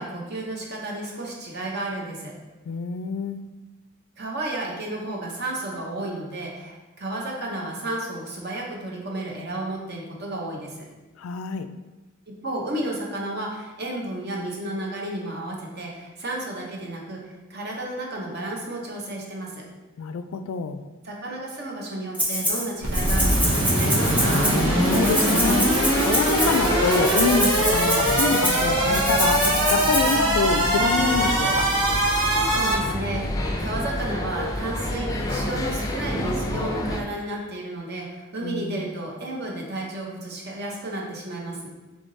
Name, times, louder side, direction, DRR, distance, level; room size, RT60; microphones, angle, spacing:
voice 1, 0.0-2.3 4.2-10.8 12.3-19.6 21.0-24.4 32.2-41.7, right 1 dB, 55° right, -1 dB, 0.9 m, -32 dB
voice 2, 2.7-3.5 11.2-11.7 20.0-20.8 24.9-25.7 26.0-31.7 38.4-38.9, left 5 dB, 90° left, 9 dB, 0.3 m, -26 dB
Rattle (instrument), 22.1-22.6 22.9-30.1, equal, 5° right, 1.0 m, -26 dB
sound 1, 22.8-32.7, right 1 dB, 75° right, 1.1 m, -22 dB
sound 2, 24.0-37.0, left 1 dB, 15° left, 0.4 m, -29 dB
3.7 x 3.5 x 3.9 m, 1.1 s
head